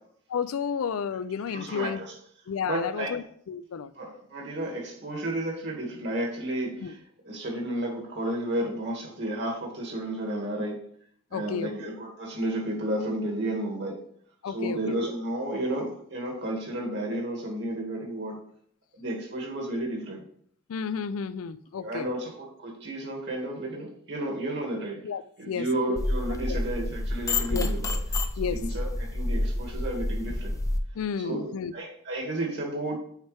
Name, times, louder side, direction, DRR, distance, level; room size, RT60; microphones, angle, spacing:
voice 1, 0.3-2.0 2.5-3.9 6.8-6.9 11.3-11.9 14.4-15.0 20.7-22.1 25.0-25.7 26.5-26.6 27.5-27.7 28.4-28.6 30.9-31.7, left 6 dB, 85° left, 0.4 m, -32 dB
voice 2, 1.5-2.1 2.6-3.1 4.0-7.0 7.3-10.8 11.3-14.0 14.5-18.4 18.9-20.2 21.8-25.0 25.4-28.0 28.5-30.6 31.2-33.0, right 1 dB, 55° right, 2.2 m, -32 dB
sound 1, 26.0-30.8, left 2 dB, 15° left, 0.4 m, -29 dB
8.2 x 4.5 x 3.4 m
head